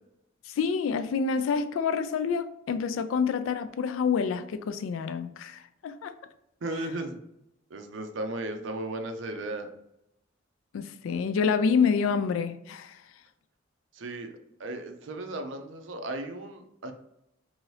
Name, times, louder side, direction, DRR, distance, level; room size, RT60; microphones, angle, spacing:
voice 1, 0.5-6.1 10.7-13.0, left 6 dB, 85° left, 0.3 m, -27 dB
voice 2, 6.6-7.2 7.7-9.7 13.9-16.9, right 2 dB, 70° right, 0.5 m, -35 dB
2.8 x 2.7 x 3.1 m
head